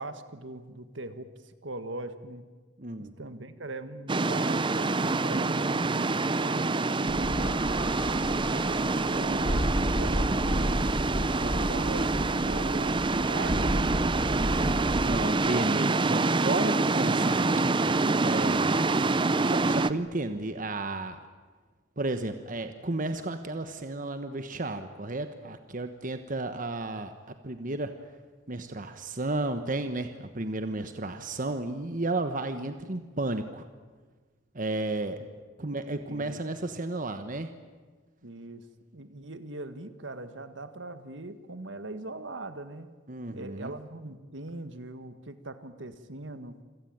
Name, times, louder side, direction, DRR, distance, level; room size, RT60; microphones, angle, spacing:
voice 1, 0.0-2.4 3.0-8.0 8.5-10.8 11.3-13.9 35.9-36.4 38.2-38.6 38.9-42.9 43.3-46.6, right 2 dB, 70° right, 10 dB, 1.7 m, -41 dB
voice 2, 2.8-3.1 14.3-18.8 19.4-21.2 22.0-28.0 28.5-33.7 34.5-35.2 35.6-37.5 43.1-43.7, right 2 dB, 45° right, 8 dB, 1.2 m, -33 dB
sound 1, 4.1-19.9, right 3 dB, 25° right, 0.6 m, -26 dB
sound 2, 7.1-15.1, equal, 65° left, 4.8 m, -32 dB
27.5 x 17.5 x 8.9 m, 1.4 s
head